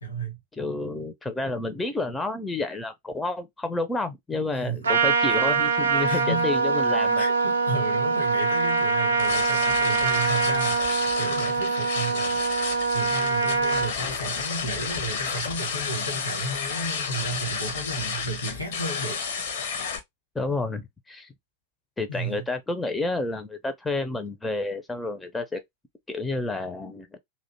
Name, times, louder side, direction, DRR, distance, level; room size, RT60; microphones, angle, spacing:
voice 1, 0.0-0.4 4.5-4.9 6.1-6.5 7.2-12.4 12.9-19.2 19.6-19.8 22.1-22.5, right 2 dB, 75° left, 1.1 m, -33 dB
voice 2, 0.6-7.2 20.4-21.3 22.0-25.6 26.1-27.2, left 2 dB, 10° left, 0.4 m, -30 dB
Trumpet, 4.8-13.9, right 4 dB, 70° right, 0.4 m, -24 dB
sound 1, 9.2-20.0, left 5 dB, 60° left, 0.6 m, -32 dB
2.5 x 2.1 x 2.6 m
figure-of-eight pair, 90°, 0 cm